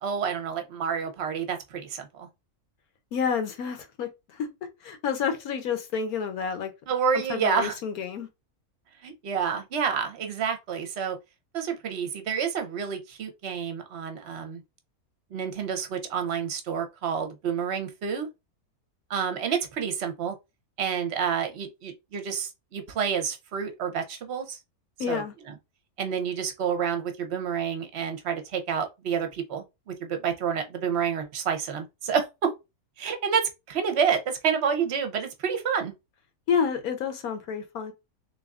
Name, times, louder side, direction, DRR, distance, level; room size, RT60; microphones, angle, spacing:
voice 1, 0.0-2.3 6.9-7.8 9.0-11.2 11.5-14.6 15.3-18.3 19.1-20.3 20.8-24.6 25.1-25.2 26.0-32.5 33.0-35.9, right 7 dB, 55° right, 0.9 m, -29 dB
voice 2, 3.1-4.5 4.8-6.7 7.1-8.3 25.0-25.3 36.5-37.9, left 6 dB, 75° left, 1.3 m, -29 dB
3.8 x 3.5 x 2.4 m
omnidirectional pair, 1.6 m